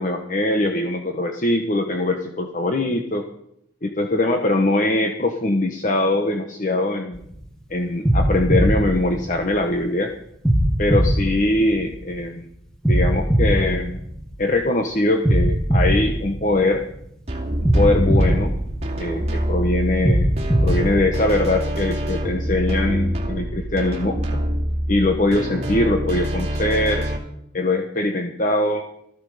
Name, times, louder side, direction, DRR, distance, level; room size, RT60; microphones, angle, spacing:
voice 1, 0.0-3.2 3.8-7.2 7.7-10.1 10.8-12.5 12.9-14.0 14.4-16.8 17.7-18.5 19.0-20.3 20.6-24.4 24.9-27.0 27.5-28.8, left 2 dB, 45° left, 3 dB, 1.2 m, -22 dB
sound 1, 7.1-7.4 8.1-9.8 10.5-12.2 12.9-14.6 15.3-17.0 17.7-19.4 20.1-21.8, equal, 5° left, 1.8 m, -21 dB
sound 2, 17.3-27.2, equal, 35° right, 2.5 m, -26 dB
16.0 x 14.0 x 5.0 m, 0.73 s
head